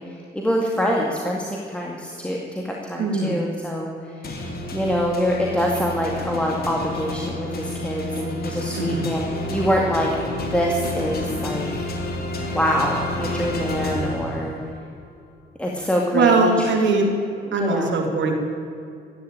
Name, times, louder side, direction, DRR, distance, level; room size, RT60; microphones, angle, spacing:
voice 1, 0.0-3.9 4.2-4.3 4.7-10.1 10.5-11.8 12.5-14.6 15.6-16.5 16.8-17.1 17.5-18.0, equal, 5° left, -2 dB, 2.2 m, -25 dB
voice 2, 3.0-3.3 8.8-9.1 16.1-17.2 17.5-18.3, right 4 dB, 70° right, 2 dB, 3.0 m, -20 dB
sound 1, 4.2-14.8, left 1 dB, 50° left, 2.8 m, -30 dB
14.5 x 10.5 x 8.9 m, 2.5 s
cardioid pair, 90°, 20 cm